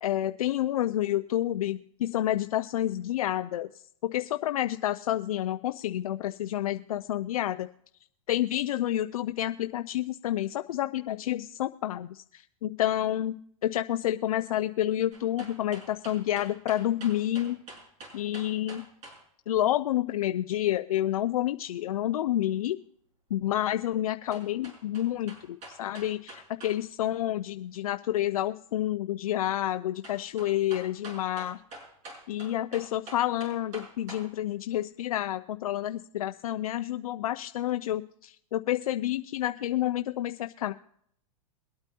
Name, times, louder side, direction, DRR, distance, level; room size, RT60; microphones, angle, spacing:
voice 1, 0.0-7.7 8.3-17.6 18.1-18.8 19.5-22.8 23.3-31.6 32.3-40.7, left 12 dB, 80° left, 8 dB, 0.5 m, -29 dB
sound 1, 15.1-19.2 24.3-26.8 27.0-27.1 30.0-34.3 34.7-34.8, right 2 dB, 40° right, 6.3 m, -46 dB
23.0 x 8.9 x 2.8 m, 0.67 s
hypercardioid pair, 120°, 18 cm